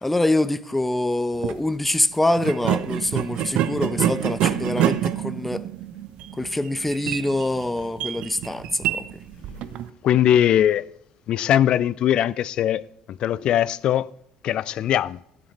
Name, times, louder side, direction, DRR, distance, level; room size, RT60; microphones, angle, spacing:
voice 1, 0.0-5.6 6.3-9.2, left 1 dB, 10° left, 0.8 m, -25 dB
sound 1, 1.3-1.6 2.4-9.9, right 11 dB, 50° right, 0.7 m, -27 dB
voice 2, 10.0-10.9 11.3-14.1 14.4-15.2, left 11 dB, 45° left, 0.4 m, -21 dB
12.5 x 9.5 x 4.3 m
figure-of-eight pair, 55°, 2 cm